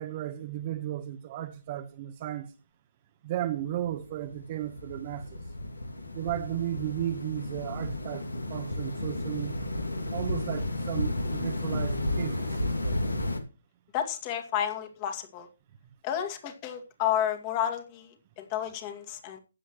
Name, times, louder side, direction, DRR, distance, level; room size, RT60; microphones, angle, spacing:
voice 1, 0.0-2.5 3.2-5.4 6.1-9.6 10.1-12.9, right 12 dB, 35° right, 1.1 m, -35 dB
sound 1, 3.6-13.4, left 1 dB, 85° left, 2.3 m, -32 dB
voice 2, 13.9-15.5 16.0-19.4, left 10 dB, 25° left, 2.2 m, -31 dB
15.5 x 10.0 x 3.0 m
figure-of-eight pair, 140°, 0 cm